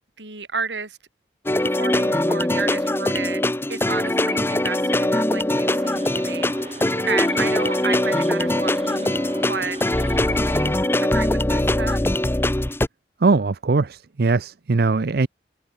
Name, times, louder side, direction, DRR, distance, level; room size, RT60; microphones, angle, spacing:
voice 1, 0.2-1.0 1.6-3.4 3.7-9.2 9.5-9.8 10.5-12.2, right 5 dB, 75° right, 6.6 m, -32 dB
sound 1, 1.5-12.9, left 1 dB, 15° left, 1.0 m, -22 dB
sound 2, 5.5-10.6, right 3 dB, 35° right, 3.5 m, -40 dB
voice 2, 13.2-15.3, right 3 dB, 55° right, 0.6 m, -20 dB
head